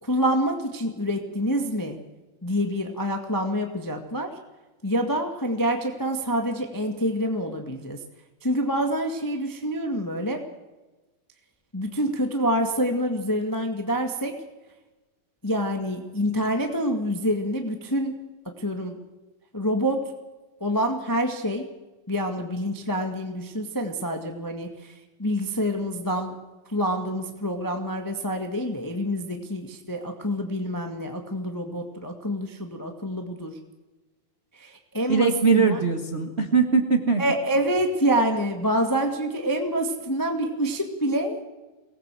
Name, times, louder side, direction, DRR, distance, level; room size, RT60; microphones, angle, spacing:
voice 1, 0.0-2.0 2.4-4.3 4.8-8.0 8.4-10.4 11.7-14.4 15.4-18.2 18.6-19.0 19.5-20.1 20.6-21.7 22.1-24.9 25.2-26.4 26.7-33.6 34.5-35.8 37.2-41.4, equal, 15° left, 3 dB, 0.6 m, -27 dB
voice 2, 35.1-37.2, right 5 dB, 35° right, 3 dB, 1.1 m, -21 dB
23.5 x 19.0 x 7.6 m, 1.2 s
omnidirectional pair, 4.0 m